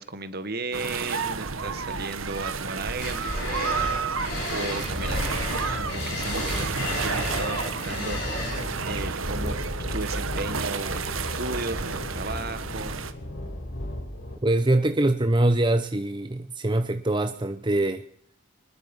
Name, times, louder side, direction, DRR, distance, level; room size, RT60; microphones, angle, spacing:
voice 1, 0.0-9.6 9.9-13.0, right 3 dB, 50° right, 11 dB, 1.7 m, -35 dB
sound 1, 0.7-13.1, right 5 dB, 85° right, 1.5 m, -31 dB
sound 2, 3.0-8.6, left 2 dB, 55° left, 4.6 m, -33 dB
sound 3, 4.6-14.4, left 1 dB, 75° left, 4.3 m, -35 dB
voice 2, 14.4-18.0, right 1 dB, 25° right, 8 dB, 0.8 m, -23 dB
24.0 x 20.5 x 5.5 m, 0.63 s
head